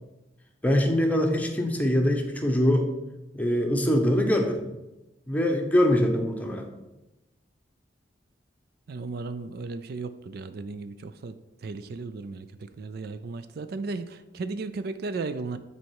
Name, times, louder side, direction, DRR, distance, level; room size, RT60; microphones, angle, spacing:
voice 1, 0.6-2.9 3.3-4.6 5.3-6.6, equal, 10° left, 2 dB, 0.9 m, -23 dB
voice 2, 8.9-15.6, right 3 dB, 60° right, 11 dB, 0.4 m, -35 dB
9.4 x 4.1 x 4.7 m, 1.0 s
head